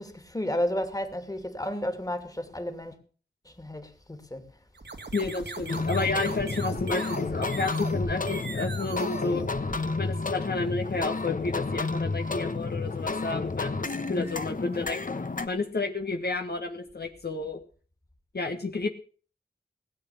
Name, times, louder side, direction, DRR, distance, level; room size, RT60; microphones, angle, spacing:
voice 1, 0.0-2.9 3.5-4.5, left 1 dB, 20° left, 2.5 m, -32 dB
sound 1, 4.7-10.2, right 3 dB, 90° right, 2.2 m, -39 dB
voice 2, 5.1-9.4 10.0-15.0 15.5-17.6 18.3-18.9, left 3 dB, 70° left, 1.5 m, -31 dB
sound 2, 5.7-15.5, left 3 dB, 50° left, 1.1 m, -31 dB
17.0 x 8.2 x 7.1 m
wide cardioid pair, 60°, 17 cm